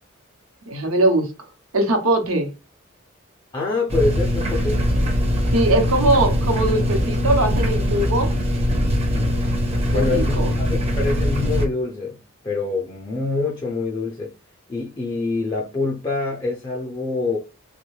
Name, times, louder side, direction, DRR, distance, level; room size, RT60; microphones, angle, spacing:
voice 1, 0.7-1.3 1.7-2.5 5.5-8.3 9.9-10.6, right 2 dB, 80° right, 0.9 m, -20 dB
voice 2, 3.5-4.8 9.1-9.5 9.9-12.2 12.4-14.3 14.7-17.4, left 3 dB, 20° left, 0.4 m, -25 dB
sound 1, 3.9-11.7, equal, 30° right, 0.6 m, -21 dB
3.4 x 2.3 x 3.1 m
head